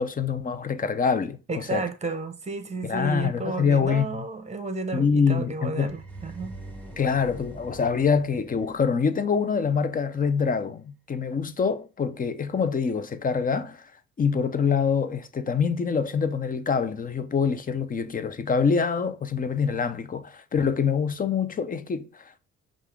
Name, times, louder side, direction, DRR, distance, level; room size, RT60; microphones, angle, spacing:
voice 1, 0.0-1.9 2.8-4.3 4.9-6.0 7.0-13.9 14.2-22.4, left 6 dB, 30° left, 0.5 m, -25 dB
voice 2, 1.5-6.5, right 3 dB, 20° right, 0.9 m, -32 dB
sound 1, 5.8-9.7, right 2 dB, 5° left, 1.3 m, -44 dB
5.5 x 2.5 x 3.4 m
cardioid pair, 90°, 30 cm